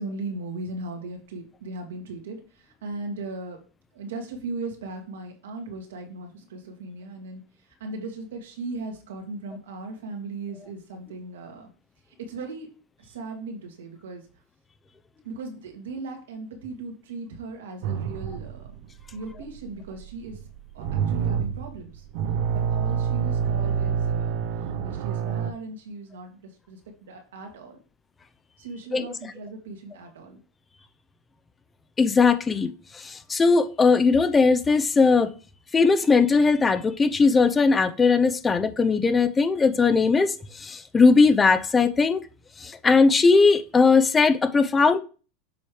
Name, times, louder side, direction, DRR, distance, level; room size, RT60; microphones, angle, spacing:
voice 1, 0.0-3.6 3.9-7.4 7.8-11.7 12.2-12.7 13.0-14.2 15.2-18.7 19.1-20.4 20.7-22.0 22.5-24.4 24.8-27.8 28.6-30.4, right 3 dB, 90° right, 1.9 m, -37 dB
sound 1, 17.8-25.5, right 8 dB, 60° right, 0.6 m, -27 dB
voice 2, 32.0-35.3 35.7-42.2 42.6-45.0, left 4 dB, 20° left, 0.6 m, -19 dB
7.0 x 3.2 x 4.9 m
supercardioid pair, 120°, 0 cm